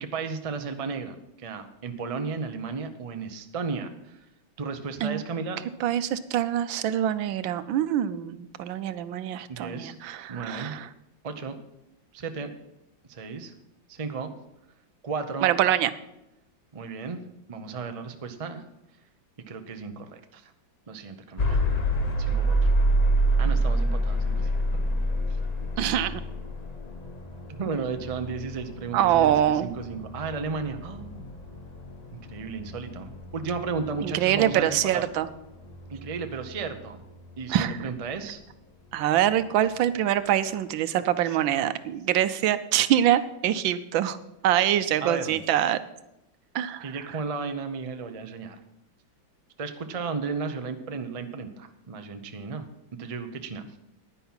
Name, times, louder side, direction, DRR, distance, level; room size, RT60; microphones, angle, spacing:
voice 1, 0.0-4.2 4.6-5.7 9.5-10.0 10.3-10.8 11.2-11.6 12.1-12.5 13.1-13.5 13.9-14.3 15.0-15.5 16.7-17.2 17.5-18.6 19.5-20.5 20.9-21.6 22.2-22.7 23.4-24.5 27.6-31.3 32.1-35.1 35.9-37.0 37.4-38.4 40.5-40.6 41.2-41.4 45.0-45.4 46.8-48.6 49.6-52.7 53.0-53.7, right 4 dB, 55° right, 7 dB, 0.3 m, -34 dB
voice 2, 5.8-10.9 15.4-15.9 25.8-26.2 28.9-29.7 34.0-35.3 37.5-37.8 38.9-44.2 44.4-45.8 46.5-46.8, right 11 dB, 80° right, 13 dB, 1.4 m, -24 dB
sound 1, 21.4-37.3, right 1 dB, 40° left, 0.5 m, -28 dB
10.5 x 10.0 x 5.7 m, 0.88 s
omnidirectional pair, 2.1 m